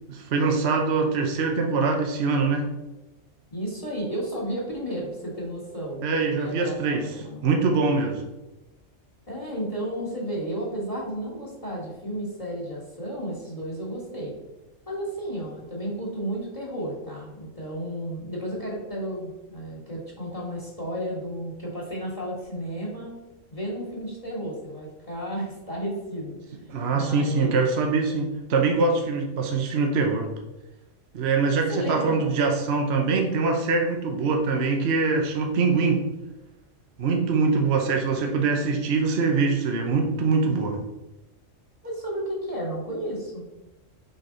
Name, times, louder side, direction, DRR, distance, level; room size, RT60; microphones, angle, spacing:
voice 1, 0.1-2.7 6.0-7.1 7.4-8.2 26.7-30.3 31.1-36.0 37.0-40.8, right 4 dB, 55° right, 3 dB, 1.0 m, -23 dB
voice 2, 3.5-7.5 9.3-14.4 14.9-23.1 23.5-26.4 26.9-27.5 31.7-32.2 41.8-43.4, right 1 dB, 25° left, -3 dB, 1.7 m, -33 dB
6.3 x 5.1 x 3.9 m, 1.0 s
omnidirectional pair, 1.3 m